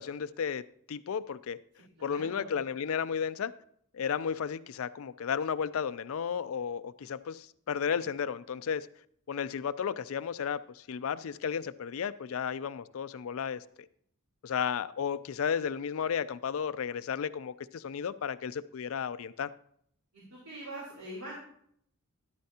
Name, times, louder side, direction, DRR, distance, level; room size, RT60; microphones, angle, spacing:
voice 1, 0.0-1.6 2.0-3.5 3.9-8.9 9.3-13.6 14.4-19.5, left 7 dB, 70° left, 0.4 m, -33 dB
voice 2, 2.0-2.5 20.1-21.4, right 1 dB, 80° right, 3.7 m, -43 dB
12.5 x 11.5 x 2.8 m
head